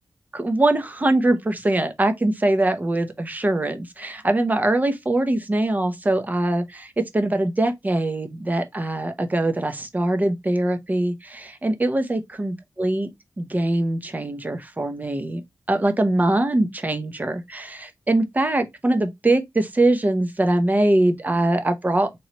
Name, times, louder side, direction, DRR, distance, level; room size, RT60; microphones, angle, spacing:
voice 1, 0.3-13.1 13.4-15.4 15.7-22.2, right 1 dB, 25° right, 0.7 m, -22 dB
3.8 x 3.1 x 2.9 m
wide cardioid pair, 120°, 7 cm